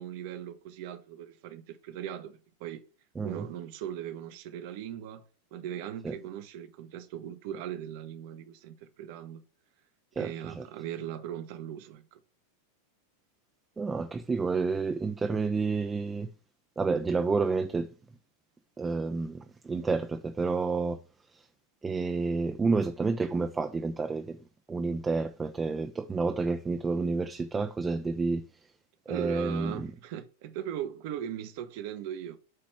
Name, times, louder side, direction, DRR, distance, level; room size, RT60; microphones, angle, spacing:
voice 1, 0.0-2.8 3.2-5.2 5.5-9.4 10.2-12.2 29.1-32.4, right 10 dB, 50° right, 0.8 m, -39 dB
voice 2, 3.2-3.5 6.0-6.1 10.2-10.7 13.8-16.3 16.8-17.9 18.8-21.0 21.3-21.5 21.8-24.4 24.7-28.4 29.1-29.9, right 4 dB, 15° right, 0.4 m, -30 dB
7.7 x 3.1 x 4.5 m
figure-of-eight pair, 90°, 0 cm